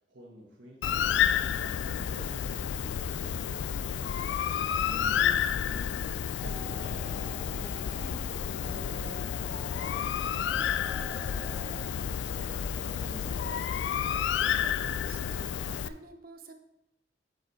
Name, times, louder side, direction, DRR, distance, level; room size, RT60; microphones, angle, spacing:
voice 1, 0.1-4.1 4.8-10.4, equal, 80° right, -2 dB, 1.4 m, -49 dB
Bird, 0.8-15.9, left 8 dB, 75° left, 0.3 m, -30 dB
voice 2, 4.9-5.2 11.5-16.5, right 1 dB, 50° right, 6 dB, 0.7 m, -50 dB
sound 1, 6.4-15.2, right 5 dB, 30° left, 1.8 m, -53 dB
sound 2, 7.0-8.3 8.6-10.1 10.4-12.0 12.3-13.8 14.1-15.2, equal, 10° left, 0.8 m, -51 dB
7.1 x 5.2 x 4.2 m, 0.82 s
head